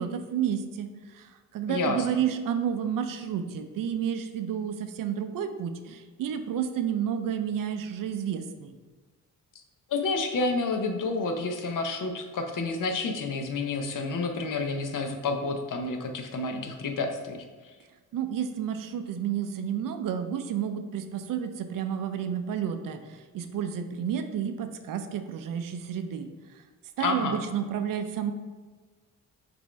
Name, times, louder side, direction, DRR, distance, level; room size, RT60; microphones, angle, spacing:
voice 1, 0.0-8.7 18.1-26.3 26.5-26.6 27.0-28.3, right 8 dB, 60° right, 8 dB, 0.5 m, -31 dB
voice 2, 1.7-2.0 9.9-17.4 27.0-27.4, left 3 dB, 55° left, 5 dB, 0.7 m, -29 dB
6.0 x 2.6 x 3.2 m, 1.3 s
supercardioid pair, 60°, 39 cm